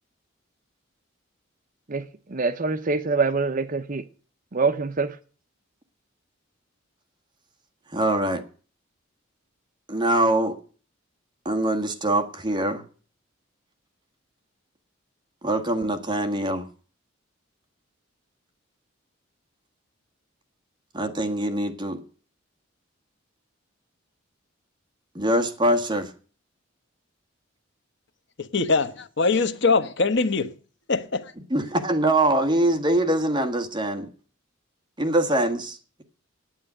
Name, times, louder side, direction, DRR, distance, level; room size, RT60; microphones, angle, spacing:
voice 1, 1.9-4.0 4.5-5.2, right 4 dB, 40° right, 0.7 m, -25 dB
voice 2, 7.9-8.4 9.9-10.6 11.4-12.8 15.4-16.7 20.9-22.0 25.1-26.1 31.5-34.1 35.0-35.8, right 1 dB, 20° right, 1.7 m, -23 dB
voice 3, 28.5-30.5 30.9-31.3, left 4 dB, 60° left, 1.1 m, -22 dB
9.5 x 9.0 x 8.8 m
head